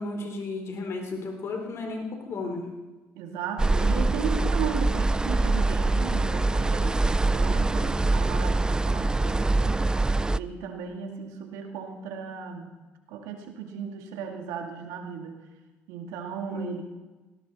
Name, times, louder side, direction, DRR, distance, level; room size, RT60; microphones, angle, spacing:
voice 1, 0.0-2.6 16.5-16.8, left 3 dB, 55° left, 3 dB, 3.7 m, -34 dB
voice 2, 3.2-9.8 10.4-12.7 13.1-15.3 15.9-16.8, right 7 dB, 80° right, 4 dB, 2.2 m, -36 dB
sound 1, 3.6-10.4, right 2 dB, 15° right, 0.4 m, -24 dB
19.0 x 16.5 x 4.1 m, 1.2 s
supercardioid pair, 70°, 6 cm